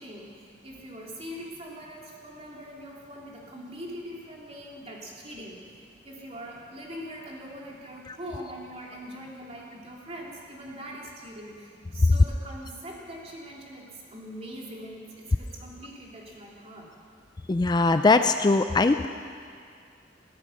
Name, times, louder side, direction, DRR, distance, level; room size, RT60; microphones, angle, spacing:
voice 1, 0.0-16.9, equal, 35° right, -3 dB, 3.0 m, -42 dB
voice 2, 17.5-19.1, left 3 dB, 25° left, 9 dB, 0.4 m, -21 dB
17.0 x 13.0 x 6.4 m, 2.2 s
head